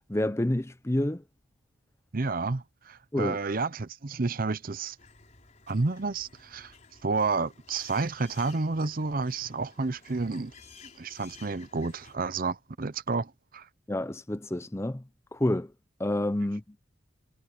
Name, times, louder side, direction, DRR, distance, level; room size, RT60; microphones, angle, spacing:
voice 1, 0.1-1.2 3.1-3.4 13.9-15.0 15.3-15.7 16.0-16.8, left 1 dB, 15° left, 0.6 m, -28 dB
voice 2, 2.1-5.0 5.7-6.7 7.0-10.5 11.0-13.6, right 3 dB, 45° right, 0.7 m, -30 dB
sound 1, 5.0-12.2, left 5 dB, 35° left, 5.2 m, -54 dB
head